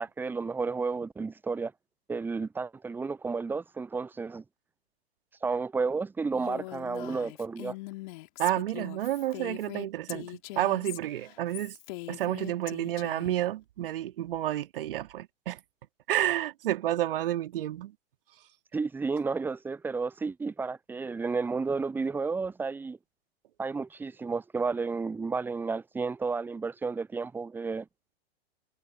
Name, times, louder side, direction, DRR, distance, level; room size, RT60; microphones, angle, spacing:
voice 1, 0.0-1.7 2.1-4.4 5.4-7.8 18.7-23.0 23.6-27.9, right 4 dB, 5° right, 0.6 m, -32 dB
Female speech woman speaking, 6.3-13.4, left 21 dB, 45° left, 3.2 m, -42 dB
voice 2, 8.4-11.8 12.1-15.6 16.1-17.9, right 13 dB, 60° right, 3.2 m, -30 dB
figure-of-eight pair, 105°, 32 cm